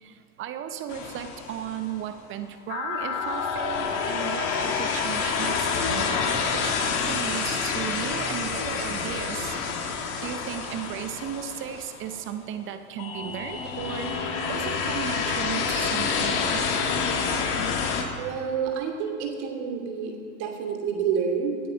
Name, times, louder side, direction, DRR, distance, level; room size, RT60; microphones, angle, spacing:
voice 1, 0.0-9.6 9.8-16.7, right 9 dB, 25° right, 9 dB, 0.7 m, -35 dB
sound 1, 0.9-1.9 2.7-12.2 13.0-18.0, left 5 dB, 45° left, 2.0 m, -28 dB
voice 2, 18.2-20.1 20.4-21.6, right 6 dB, 50° right, 2 dB, 2.8 m, -28 dB
17.5 x 9.3 x 5.2 m, 2.3 s
hypercardioid pair, 100°, 46 cm